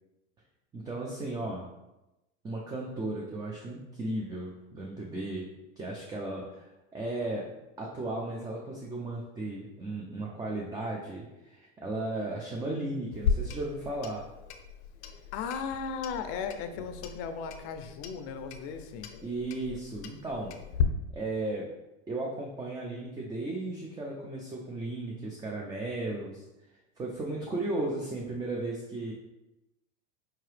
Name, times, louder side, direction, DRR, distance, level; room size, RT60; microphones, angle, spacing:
voice 1, 0.7-1.7 2.4-5.5 5.8-7.5 7.8-14.2 19.2-20.6 21.1-21.7 22.1-26.4 27.0-29.1, right 2 dB, 10° right, -2 dB, 0.4 m, -35 dB
Clock, 13.1-20.8, left 7 dB, 90° left, 0.6 m, -36 dB
voice 2, 15.3-19.1, left 6 dB, 45° left, 8 dB, 0.5 m, -36 dB
4.7 x 2.8 x 3.2 m, 0.96 s
supercardioid pair, 125°, 33 cm